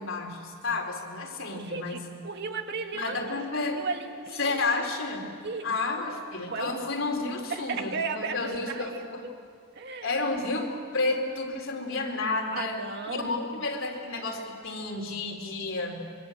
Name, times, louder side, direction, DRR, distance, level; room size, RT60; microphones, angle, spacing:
voice 1, 0.0-2.0 2.9-3.8 4.4-5.3 5.6-9.2 10.0-12.8 13.1-16.0, left 3 dB, 70° left, 2 dB, 4.1 m, -31 dB
voice 2, 1.5-4.9 5.4-5.8 6.0-6.2 6.5-6.9 7.5-9.4 9.8-10.1 12.5-13.4, right 4 dB, 55° right, 4 dB, 2.1 m, -36 dB
25.5 x 22.5 x 7.9 m, 2.1 s
head